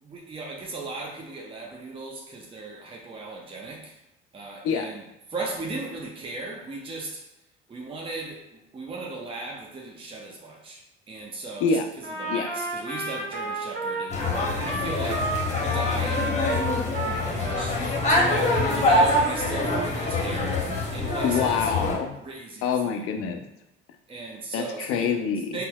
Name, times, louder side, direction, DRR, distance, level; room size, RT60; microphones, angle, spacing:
voice 1, 0.0-4.0 4.3-5.0 5.3-7.3 7.7-10.8 11.1-11.7 12.2-16.3 16.9-21.7 22.2-23.0 24.1-25.1 25.5-25.7, right 3 dB, 15° right, -1 dB, 0.7 m, -36 dB
Trumpet, 12.0-18.2 18.5-19.3, right 2 dB, 35° right, 1.2 m, -32 dB
sound 1, 14.1-22.0, left 2 dB, 20° left, 1.0 m, -25 dB
voice 2, 21.2-22.2 22.6-23.5 24.5-25.6, left 6 dB, 45° left, 5 dB, 0.6 m, -26 dB
5.5 x 2.0 x 2.2 m, 0.89 s
figure-of-eight pair, 55°, 31 cm